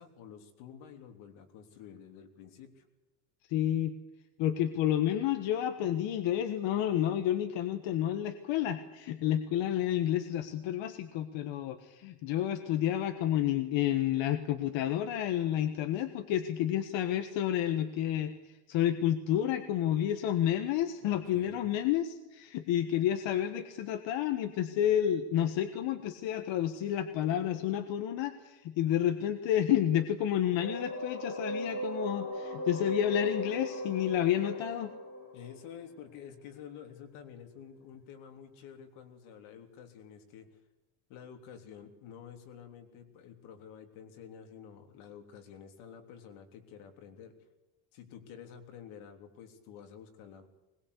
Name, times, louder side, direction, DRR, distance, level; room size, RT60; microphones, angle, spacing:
voice 1, 0.0-2.8 21.0-21.6 35.3-40.5 41.1-47.3 47.9-50.5, left 8 dB, 85° left, 5 dB, 3.5 m, -50 dB
voice 2, 3.5-4.0 4.4-34.9, left 11 dB, 65° left, 8 dB, 1.5 m, -30 dB
sound 1, 30.6-36.3, equal, 25° left, 5.3 m, -38 dB
21.0 x 21.0 x 8.4 m, 1.0 s
cardioid pair, 165°, 47 cm